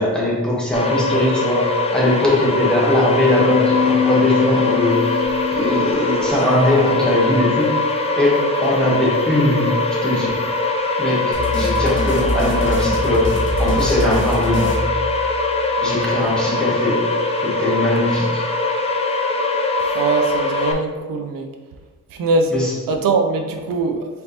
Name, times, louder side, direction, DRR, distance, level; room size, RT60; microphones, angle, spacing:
voice 1, 0.0-5.2 5.6-7.7 8.2-10.4 11.0-14.9 15.8-17.1 17.4-18.4 22.5-22.8, left 1 dB, 5° left, -5 dB, 1.1 m, -20 dB
sound 1, 0.7-20.7, left 2 dB, 20° left, 0.4 m, -22 dB
sound 2, 3.2-7.6 11.3-11.9, left 6 dB, 30° right, 1.1 m, -24 dB
sound 3, 11.3-15.6, equal, 35° left, 1.1 m, -25 dB
voice 2, 19.9-21.5 22.2-22.5 22.9-24.1, right 3 dB, 85° right, 4 dB, 0.6 m, -21 dB
4.3 x 3.5 x 2.8 m, 1.3 s
cardioid pair, 125°, 33 cm